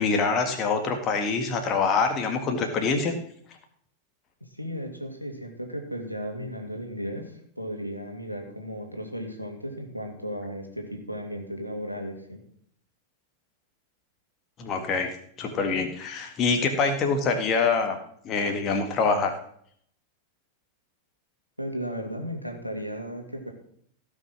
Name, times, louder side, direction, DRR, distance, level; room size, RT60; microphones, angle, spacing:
voice 1, 0.0-3.2 14.6-18.0 18.2-19.3, left 4 dB, 30° left, 5 dB, 2.0 m, -25 dB
voice 2, 4.5-12.4 21.6-23.5, equal, 90° left, 2 dB, 2.4 m, -35 dB
16.5 x 6.3 x 6.1 m, 0.64 s
figure-of-eight pair, 90°, 0 cm